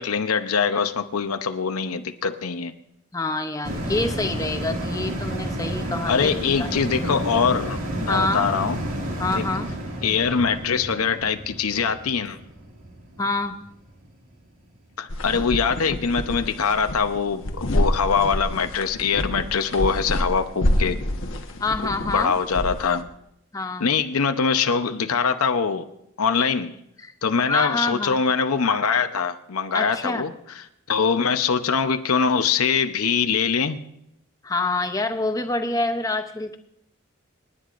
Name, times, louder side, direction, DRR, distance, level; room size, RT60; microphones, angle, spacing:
voice 1, 0.0-2.7 6.1-8.8 9.3-9.4 10.0-12.4 15.0-21.0 21.8-23.1 23.8-25.8 26.2-26.7 27.2-33.8, left 6 dB, 85° left, 8 dB, 0.7 m, -23 dB
voice 2, 3.1-6.3 6.6-6.7 8.1-8.5 9.2-9.7 13.2-13.5 15.3-15.4 21.6-22.3 23.5-23.9 27.0-27.1 27.4-28.2 29.7-30.3 34.4-36.6, left 2 dB, 15° left, 7 dB, 0.7 m, -26 dB
sound 1, 3.6-14.3 14.8-14.9, right 1 dB, 80° right, 2.1 m, -31 dB
sound 2, 15.1-23.0, left 1 dB, 65° left, 1.1 m, -27 dB
27.5 x 10.0 x 2.5 m, 0.77 s
head